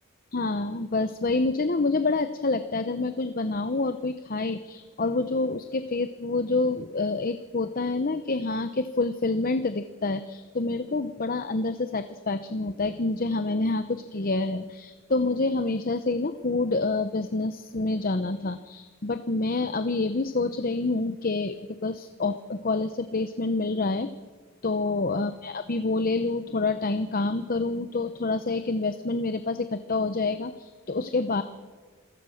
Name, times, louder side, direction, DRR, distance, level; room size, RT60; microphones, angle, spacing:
voice 1, 0.3-24.1 24.6-31.4, left 3 dB, 40° left, 11 dB, 0.8 m, -27 dB
27.5 x 15.5 x 6.5 m, 1.5 s
head